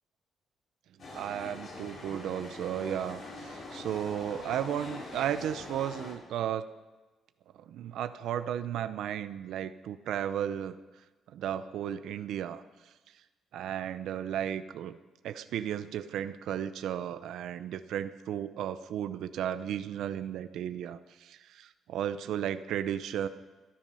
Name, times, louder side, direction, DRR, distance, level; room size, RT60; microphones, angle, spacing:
sound 1, 1.0-6.1, left 2 dB, 55° left, 6.8 m, -43 dB
voice 1, 1.1-6.7 7.7-10.8 11.3-12.6 13.5-14.9 15.2-23.3, right 10 dB, 80° right, 11 dB, 0.7 m, -34 dB
24.0 x 10.5 x 5.6 m, 1.2 s
cardioid pair, 90°, 0 cm